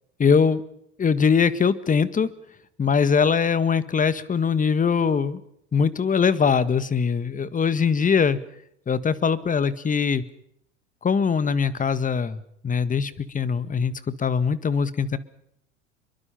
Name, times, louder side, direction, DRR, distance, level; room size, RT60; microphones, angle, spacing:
voice 1, 0.2-0.6 1.0-2.3 2.8-5.4 5.7-8.4 8.9-10.2 11.0-13.9 14.2-15.2, left 6 dB, 25° left, 15 dB, 1.7 m, -22 dB
27.0 x 23.5 x 5.7 m, 0.74 s
hypercardioid pair, 80°, 34 cm